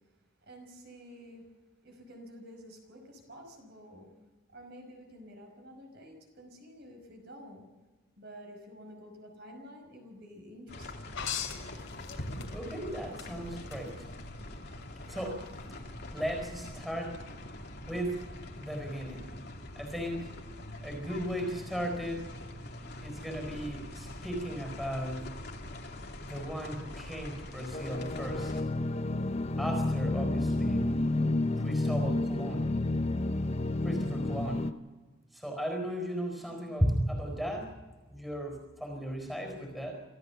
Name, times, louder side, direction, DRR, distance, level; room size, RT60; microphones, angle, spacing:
voice 1, 0.4-1.4 1.8-4.1 4.5-7.7 8.2-11.2, equal, 50° right, 3 dB, 5.5 m, -50 dB
sound 1, 10.7-28.6, left 1 dB, 50° left, 2.4 m, -44 dB
sound 2, 11.1-12.8 13.2-13.8 15.4-15.5, left 6 dB, 80° left, 3.1 m, -37 dB
voice 2, 12.5-14.1 15.1-15.5 16.1-17.2 17.9-18.2 18.5-19.3 19.8-20.3 20.8-22.3 23.0-25.3 26.2-28.6 29.6-30.9 31.6-32.8 33.8-34.7 35.3-37.8 38.1-39.9, equal, ahead, 3 dB, 4.3 m, -35 dB
sound 3, 27.7-34.7, left 2 dB, 30° left, 0.6 m, -30 dB
26.0 x 15.0 x 7.0 m, 1.2 s
head